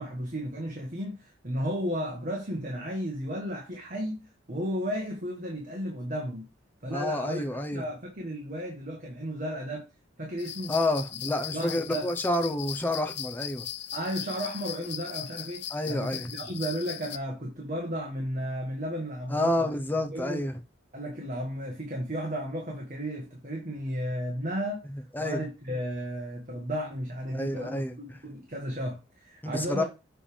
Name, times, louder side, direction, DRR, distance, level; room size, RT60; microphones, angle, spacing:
voice 1, 0.0-6.4 6.8-9.9 10.2-10.7 11.1-11.2 11.5-12.1 13.9-19.7 20.1-20.4 20.9-24.8 25.2-29.8, equal, 40° right, 1.5 m, -34 dB
voice 2, 6.9-7.8 10.7-13.6 15.7-16.3 19.3-20.6 25.1-25.4 27.3-28.0 29.4-29.8, left 1 dB, 10° left, 0.8 m, -29 dB
sound 1, 10.4-17.2, left 11 dB, 55° left, 0.5 m, -39 dB
7.6 x 3.5 x 5.1 m
head